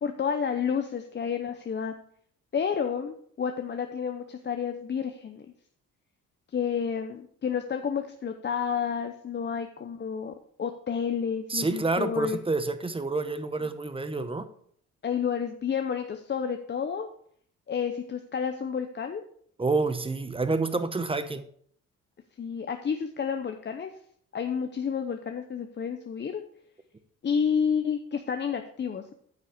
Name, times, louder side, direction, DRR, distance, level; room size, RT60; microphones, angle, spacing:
voice 1, 0.0-1.9 2.5-5.5 6.5-12.4 15.0-17.1 17.7-19.2 22.4-23.9 24.3-26.4 27.2-29.1, left 7 dB, 35° left, 0.7 m, -30 dB
voice 2, 11.5-14.5 19.6-21.4, right 3 dB, 20° right, 0.9 m, -28 dB
9.4 x 5.8 x 5.1 m
cardioid pair, 90°, 30 cm